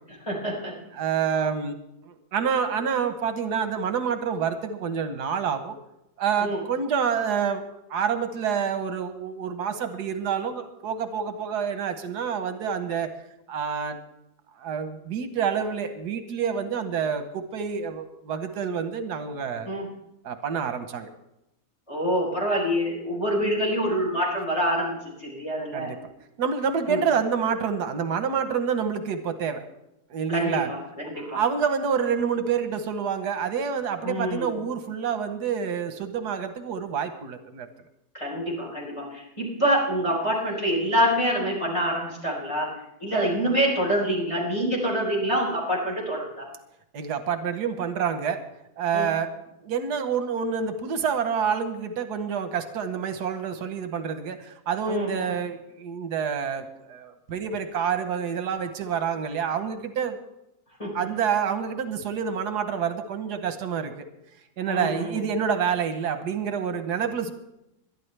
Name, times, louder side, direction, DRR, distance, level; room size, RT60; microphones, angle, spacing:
voice 1, 0.3-0.7 6.4-6.6 19.7-19.9 21.9-25.9 26.9-27.0 30.3-31.4 34.0-34.6 38.1-42.7 43.0-46.5 48.9-49.1 54.9-55.3 60.8-60.9 64.7-65.2, equal, 20° left, -3 dB, 4.2 m, -26 dB
voice 2, 0.9-1.8 2.0-5.8 6.2-13.1 13.5-14.0 14.6-19.7 20.2-21.1 25.7-26.0 26.4-29.6 30.1-30.7 31.2-37.7 46.9-48.4 48.8-49.3 49.6-60.2 60.9-64.1 64.6-67.3, right 7 dB, 85° right, 8 dB, 1.6 m, -28 dB
21.5 x 11.5 x 3.3 m, 0.86 s
omnidirectional pair, 1.7 m